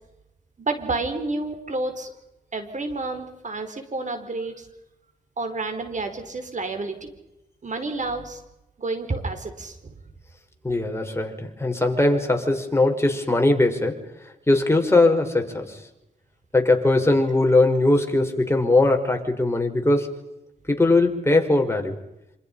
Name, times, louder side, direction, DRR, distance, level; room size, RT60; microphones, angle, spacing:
voice 1, 0.6-2.1 2.5-4.7 5.4-7.1 7.6-8.4 8.8-9.9, right 3 dB, 50° right, 7 dB, 5.0 m, -30 dB
voice 2, 10.6-14.1 14.5-15.8 16.5-20.2 20.7-22.0, left 2 dB, 15° left, 3 dB, 5.2 m, -20 dB
27.5 x 27.0 x 5.6 m, 0.91 s
cardioid pair, 65°, 16 cm